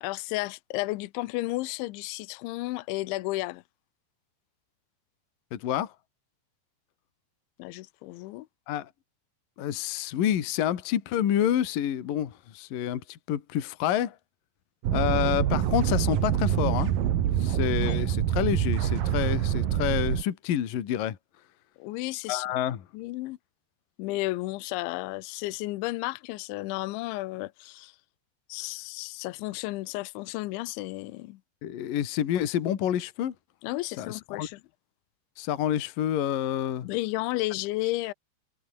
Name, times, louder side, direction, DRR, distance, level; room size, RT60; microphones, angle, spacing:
voice 1, 0.0-3.6 7.6-8.5 21.8-22.5 22.9-23.4 24.0-27.9 28.5-31.4 33.6-34.6 36.8-38.1, left 20 dB, 80° left, 3.1 m, -33 dB
voice 2, 5.5-5.9 8.7-8.9 9.6-14.2 14.9-16.9 17.4-21.2 22.3-22.8 31.6-33.3 34.0-34.5 35.4-36.9, left 10 dB, 55° left, 3.2 m, -28 dB
sound 1, 14.8-20.2, right 10 dB, 55° right, 2.9 m, -26 dB
omnidirectional pair, 5.6 m